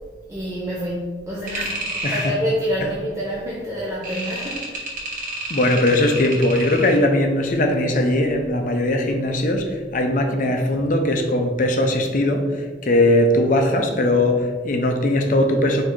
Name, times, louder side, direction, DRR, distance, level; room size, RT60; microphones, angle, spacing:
voice 1, 0.3-4.7 5.6-5.7, equal, 15° right, -6 dB, 0.6 m, -27 dB
sound 1, 1.5-2.4 4.0-7.1, right 1 dB, 45° right, 1.0 m, -30 dB
voice 2, 2.0-2.3 5.5-15.8, left 1 dB, 45° left, 4 dB, 0.5 m, -20 dB
4.3 x 2.7 x 4.4 m, 1.4 s
head